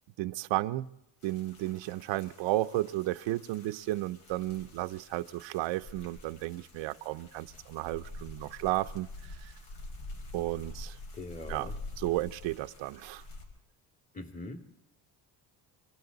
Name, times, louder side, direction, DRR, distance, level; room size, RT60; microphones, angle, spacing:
voice 1, 0.2-0.9 1.2-9.5 10.3-11.0 11.5-11.7 12.0-13.2, right 17 dB, 85° right, 13 dB, 0.8 m, -33 dB
sound 1, 1.2-13.4, left 2 dB, 75° left, 4.7 m, -47 dB
voice 2, 11.2-11.7 14.1-14.6, left 2 dB, 20° left, 5 dB, 2.3 m, -42 dB
27.5 x 24.5 x 4.0 m, 0.83 s
cardioid pair, 115°, 44 cm